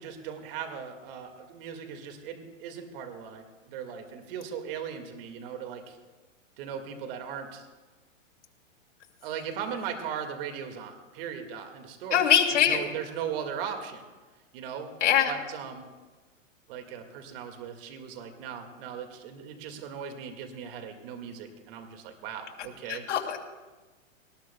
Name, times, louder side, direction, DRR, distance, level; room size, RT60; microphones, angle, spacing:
voice 1, 0.0-6.0 6.6-7.7 9.2-12.2 12.6-14.0 14.5-14.9 15.3-15.9 16.7-23.1, right 7 dB, 45° right, 5 dB, 2.1 m, -38 dB
voice 2, 12.1-12.8 15.0-15.3 22.9-23.4, left 9 dB, 65° left, 0 dB, 2.7 m, -23 dB
21.0 x 19.5 x 2.3 m, 1.2 s
hypercardioid pair, 140°, 39 cm